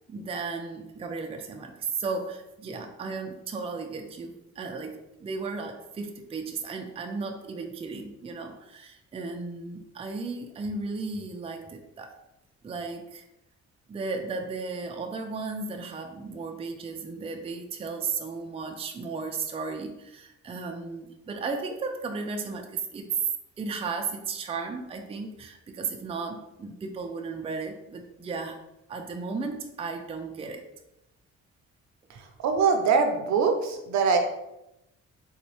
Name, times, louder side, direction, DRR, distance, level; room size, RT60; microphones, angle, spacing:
voice 1, 0.1-12.2 12.6-13.2 13.9-23.1 23.6-28.6 28.9-30.7, right 4 dB, 20° right, 3 dB, 0.4 m, -35 dB
voice 2, 32.4-34.2, right 5 dB, 65° right, 5 dB, 0.6 m, -23 dB
3.9 x 2.2 x 3.1 m, 0.89 s
cardioid pair, 90°, 30 cm